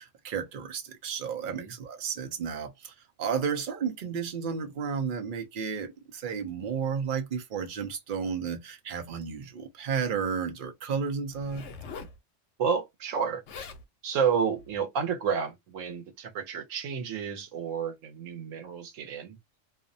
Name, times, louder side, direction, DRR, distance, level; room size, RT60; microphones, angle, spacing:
voice 1, 0.0-11.7, right 6 dB, 50° right, 0.7 m, -32 dB
voice 2, 1.4-1.7 12.6-13.4 14.0-19.4, right 6 dB, 85° right, 1.1 m, -30 dB
Zipper (clothing), 11.3-12.2 13.2-13.3 13.5-13.8 14.5-14.8, left 5 dB, 70° left, 0.9 m, -43 dB
2.6 x 2.1 x 2.6 m
omnidirectional pair, 1.3 m